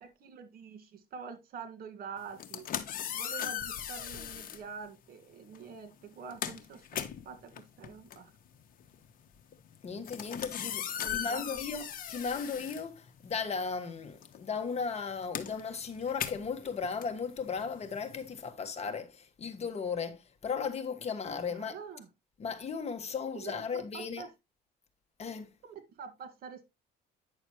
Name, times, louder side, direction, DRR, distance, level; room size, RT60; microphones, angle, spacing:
voice 1, 0.0-2.7 3.1-8.3 11.0-11.6 21.5-22.1 23.4-24.3 25.6-26.6, right 6 dB, 60° right, 1.8 m, -46 dB
sound 1, 2.3-4.7 5.5-5.7 6.0-13.6 13.8-18.5, left 9 dB, 55° left, 1.2 m, -39 dB
voice 2, 9.8-21.8 22.4-24.2 25.2-25.5, left 5 dB, 40° left, 1.5 m, -36 dB
9.6 x 6.4 x 3.1 m
cardioid pair, 110°, 17 cm